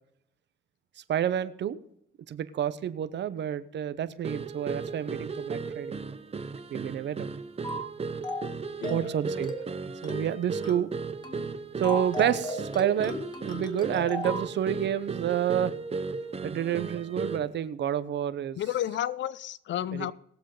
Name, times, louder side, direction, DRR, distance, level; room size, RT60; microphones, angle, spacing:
voice 1, 1.1-1.8 2.3-5.9 6.7-7.3 8.9-9.5 10.0-10.9 11.8-15.8 16.4-18.6 20.0-20.1, right 10 dB, 60° right, 14 dB, 0.9 m, -29 dB
sound 1, 4.2-17.6, right 4 dB, 30° right, 0.9 m, -36 dB
sound 2, 7.6-7.9 8.2-8.5 8.8-9.1 9.4-9.7 10.0-10.3 10.6-10.9 11.2-11.5 11.8-14.5, left 1 dB, 20° left, 2.0 m, -35 dB
voice 2, 8.8-9.1 18.6-20.1, left 11 dB, 70° left, 18 dB, 0.6 m, -31 dB
20.0 x 7.3 x 3.8 m, 0.75 s
cardioid pair, 90°, 20 cm